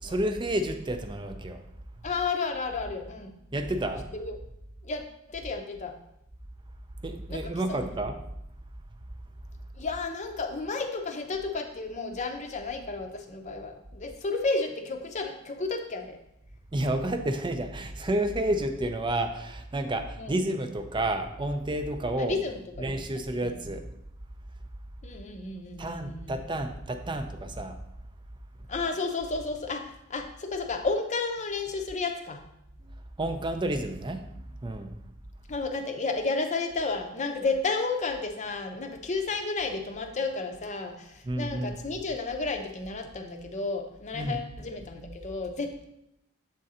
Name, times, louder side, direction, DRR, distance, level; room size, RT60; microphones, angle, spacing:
voice 1, 0.0-1.6 3.5-4.1 7.0-8.2 16.7-22.4 22.8-23.8 25.8-27.7 33.2-34.2 34.6-34.9 41.2-41.8 44.1-44.4, right 1 dB, 20° right, 7 dB, 0.5 m, -30 dB
voice 2, 2.0-3.3 4.1-4.4 4.8-5.0 5.3-5.9 7.3-8.0 9.8-16.2 20.2-20.4 22.2-23.6 25.0-26.4 28.7-32.4 35.5-45.8, left 3 dB, 35° left, 4 dB, 0.7 m, -32 dB
7.6 x 3.8 x 4.2 m, 0.80 s
head